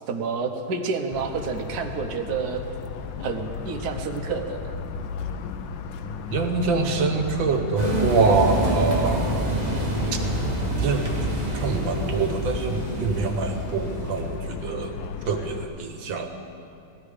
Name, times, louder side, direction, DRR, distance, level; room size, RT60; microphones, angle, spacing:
voice 1, 0.0-2.6 3.2-4.8, right 5 dB, 60° right, 4 dB, 1.3 m, -29 dB
Motor vehicle (road) / Siren, 1.1-15.6, left 5 dB, 75° left, 1.4 m, -35 dB
voice 2, 6.3-9.4 10.1-10.2 10.8-14.9 15.2-16.3, right 4 dB, 75° right, 5 dB, 1.8 m, -25 dB
sound 1, 7.8-14.5, right 1 dB, 20° right, 1.7 m, -27 dB
17.5 x 12.5 x 5.0 m, 2.7 s
omnidirectional pair, 2.1 m